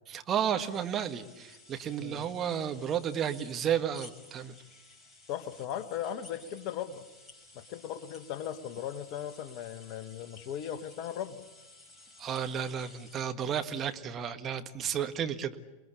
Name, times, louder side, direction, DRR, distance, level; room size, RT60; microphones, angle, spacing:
voice 1, 0.1-4.5 12.2-15.6, right 8 dB, 25° right, 8 dB, 1.7 m, -32 dB
sound 1, 0.6-13.1, left 2 dB, 5° left, 6.4 m, -55 dB
voice 2, 5.3-7.0 7.5-11.4, left 10 dB, 40° left, 12 dB, 1.7 m, -38 dB
28.5 x 22.0 x 8.4 m, 1.1 s
figure-of-eight pair, 90°, 0 cm